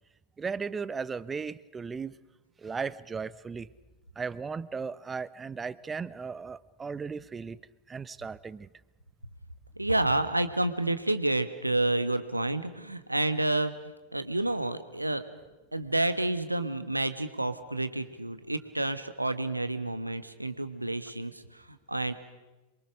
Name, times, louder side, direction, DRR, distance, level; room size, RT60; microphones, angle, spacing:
voice 1, 0.4-2.2 2.6-3.7 4.2-7.6 7.9-8.7, right 5 dB, 15° right, 19 dB, 0.7 m, -36 dB
voice 2, 9.8-15.2 15.7-22.1, right 2 dB, 85° right, 11 dB, 1.4 m, -29 dB
27.0 x 23.5 x 6.4 m, 1.1 s
figure-of-eight pair, 90°, 0 cm